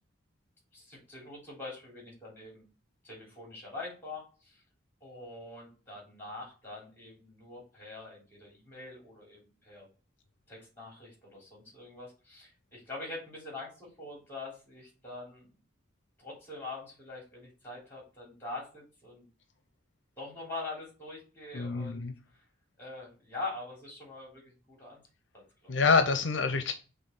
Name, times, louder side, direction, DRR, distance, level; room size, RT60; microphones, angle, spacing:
voice 1, 0.7-2.7 3.0-4.6 5.0-9.9 10.5-15.5 16.2-19.2 20.2-22.0 22.8-25.0 25.3-25.8, left 2 dB, 10° left, -3 dB, 3.3 m, -44 dB
voice 2, 21.5-22.1 25.7-26.7, left 4 dB, 65° left, 8 dB, 0.6 m, -26 dB
6.2 x 3.4 x 5.4 m, 0.35 s
head